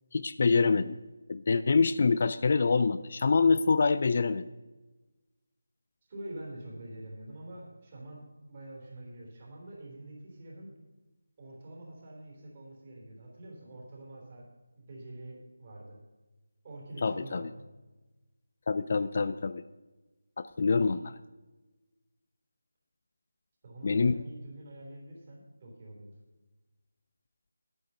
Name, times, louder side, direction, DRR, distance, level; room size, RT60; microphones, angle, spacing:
voice 1, 0.1-1.0 1.3-4.5 17.0-17.5 18.7-19.6 20.4-21.2 23.8-24.2, left 4 dB, 40° left, 13 dB, 0.4 m, -26 dB
voice 2, 6.1-8.2 8.5-10.7 11.4-14.5 14.7-16.0 16.6-17.6 23.6-26.1, right 1 dB, 30° right, -3 dB, 3.3 m, -46 dB
9.4 x 9.1 x 5.5 m, 1.1 s
figure-of-eight pair, 170°, 0 cm